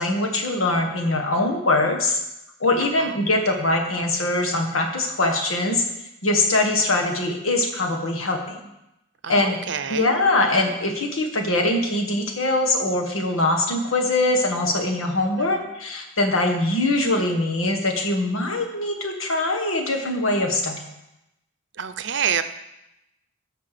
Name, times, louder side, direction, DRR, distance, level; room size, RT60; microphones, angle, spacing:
voice 1, 0.0-2.2 2.6-5.8 6.2-8.7 9.3-9.6 9.9-20.8, left 2 dB, 90° left, 2 dB, 1.7 m, -22 dB
voice 2, 9.2-10.1 15.2-15.7 21.8-22.4, right 8 dB, 60° right, 11 dB, 0.6 m, -28 dB
13.5 x 6.0 x 5.1 m, 0.90 s
head